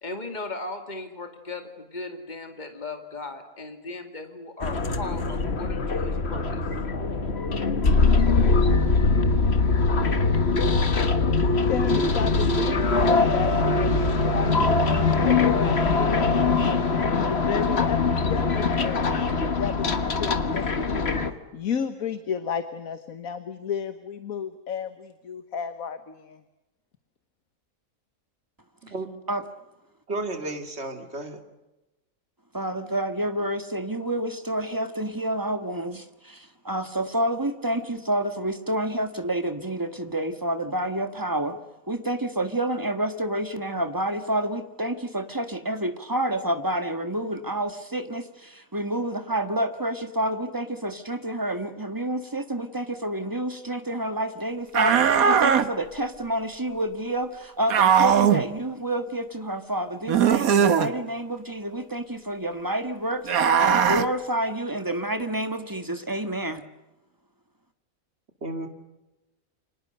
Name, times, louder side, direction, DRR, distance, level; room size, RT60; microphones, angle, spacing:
voice 1, 0.0-6.6, left 3 dB, 30° left, 5 dB, 2.6 m, -37 dB
sound 1, 4.6-21.3, left 3 dB, 50° left, 1.8 m, -22 dB
voice 2, 11.7-14.8 15.2-18.0 18.2-19.0 19.4-21.2 21.5-26.4, left 7 dB, 75° left, 10 dB, 1.7 m, -33 dB
voice 3, 30.1-31.4 68.4-68.7, right 2 dB, 50° right, 6 dB, 2.8 m, -32 dB
voice 4, 32.5-41.6 41.9-66.6, right 1 dB, 15° right, 8 dB, 1.5 m, -29 dB
sound 2, 54.7-55.7 57.7-58.4 60.1-60.9 63.3-64.1, right 7 dB, 80° right, 1.6 m, -19 dB
29.5 x 25.5 x 6.7 m, 1.0 s
omnidirectional pair, 1.5 m